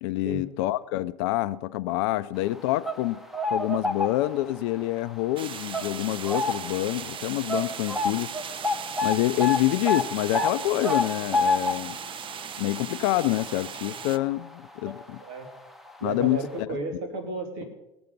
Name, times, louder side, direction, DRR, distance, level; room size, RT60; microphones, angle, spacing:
voice 1, 0.0-3.2 3.5-8.3 9.0-12.0 12.6-15.2 16.0-16.4, left 16 dB, 75° left, 0.5 m, -27 dB
sound 1, 2.6-4.6 5.0-5.2 5.7-6.8 7.1-7.2 7.5-14.5 14.8-15.0 15.9-16.0 16.3-16.4, left 3 dB, ahead, 1.0 m, -29 dB
sound 2, 5.4-14.2, right 8 dB, 35° right, 0.6 m, -38 dB
voice 2, 16.0-17.6, right 2 dB, 80° right, 2.6 m, -33 dB
19.0 x 7.0 x 5.3 m
supercardioid pair, 85°, 14 cm